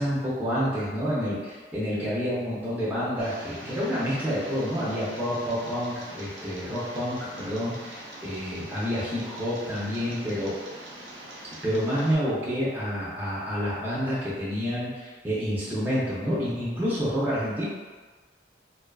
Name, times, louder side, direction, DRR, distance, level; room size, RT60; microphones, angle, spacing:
voice 1, 0.0-10.6 11.6-17.6, equal, 10° right, -9 dB, 0.4 m, -28 dB
Tick, 3.2-12.2, right 1 dB, 75° right, 0.6 m, -43 dB
2.5 x 2.3 x 2.2 m, 1.4 s
head